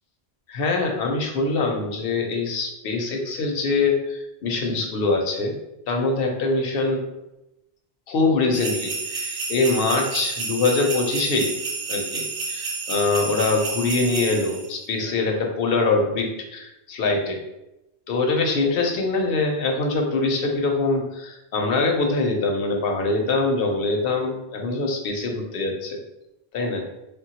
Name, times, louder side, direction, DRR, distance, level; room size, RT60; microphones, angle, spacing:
voice 1, 0.5-5.6 5.9-7.1 8.1-11.5 11.9-17.4 18.1-26.0 26.5-26.9, left 3 dB, 65° left, 2 dB, 0.7 m, -23 dB
sound 1, 8.5-14.7, right 4 dB, 55° right, 0.5 m, -30 dB
3.3 x 2.2 x 2.8 m, 0.91 s
omnidirectional pair, 1.1 m